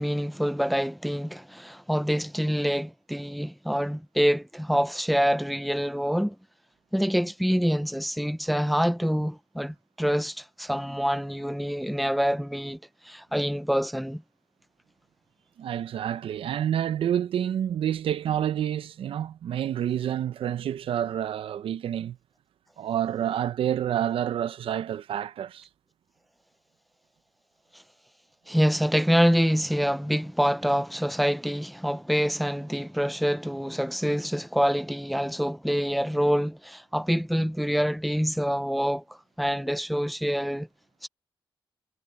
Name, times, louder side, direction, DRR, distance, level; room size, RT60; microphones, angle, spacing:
voice 1, 0.0-6.4 6.9-12.8 13.1-14.2 28.5-39.0 39.4-40.7 41.0-41.1, equal, ahead, 0.6 m, -26 dB
voice 2, 15.6-22.2 22.8-25.7, right 10 dB, 85° right, 0.6 m, -28 dB
cardioid pair, 80°, 9 cm